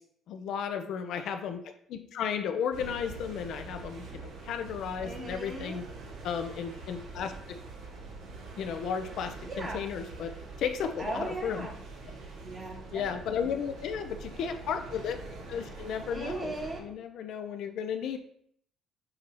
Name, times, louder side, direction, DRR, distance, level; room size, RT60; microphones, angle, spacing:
voice 1, 0.3-1.6 1.9-5.8 6.2-7.6 8.6-10.3 10.6-11.7 12.9-15.2 15.5-18.2, left 7 dB, 65° left, 7 dB, 0.6 m, -34 dB
sound 1, 2.7-16.8, right 3 dB, 75° right, 2.0 m, -44 dB
voice 2, 5.0-5.9 9.4-9.8 11.0-11.7 12.4-13.5 16.1-16.8, right 2 dB, 20° right, -1 dB, 1.5 m, -38 dB
7.7 x 2.8 x 4.5 m, 0.65 s
cardioid pair, 150°, 0 cm